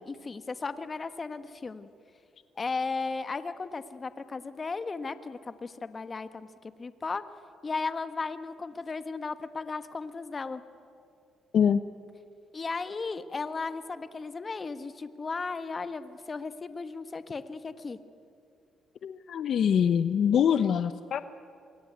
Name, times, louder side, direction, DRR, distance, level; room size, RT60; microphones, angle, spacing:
voice 1, 0.0-1.9 2.6-7.2 7.6-10.6 12.5-18.0, left 4 dB, 30° left, 11 dB, 1.4 m, -35 dB
voice 2, 19.0-21.2, left 8 dB, 65° left, 12 dB, 0.8 m, -24 dB
27.0 x 22.5 x 9.4 m, 2.6 s
cardioid pair, 90°, 0 cm